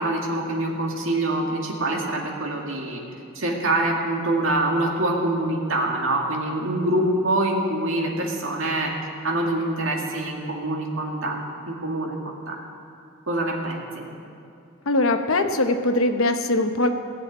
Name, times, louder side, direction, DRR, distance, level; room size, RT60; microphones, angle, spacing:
voice 1, 0.0-3.0 3.4-8.9 9.2-11.4 11.7-12.5 13.3-14.1, right 1 dB, 75° right, -1 dB, 2.1 m, -25 dB
voice 2, 14.8-16.9, left 2 dB, 90° left, 7 dB, 1.0 m, -21 dB
17.0 x 7.1 x 8.8 m, 2.6 s
head